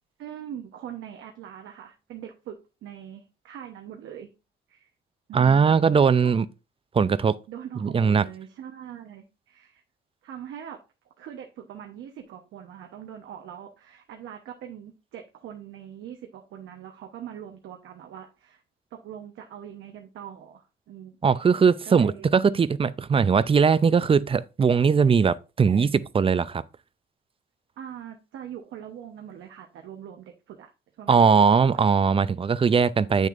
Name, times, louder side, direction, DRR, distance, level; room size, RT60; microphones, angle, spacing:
voice 1, 0.2-4.3 4.7-4.9 6.2-6.3 7.5-9.8 10.2-10.8 11.2-18.6 18.9-21.2 21.8-22.4 27.8-30.7 31.0-32.0, right 9 dB, 80° right, 1.0 m, -42 dB
voice 2, 5.3-6.5 6.9-7.4 7.8-8.2 21.2-26.6 31.1-33.3, right 6 dB, 30° right, 0.4 m, -20 dB
8.5 x 6.5 x 2.5 m
cardioid pair, 90°, 20 cm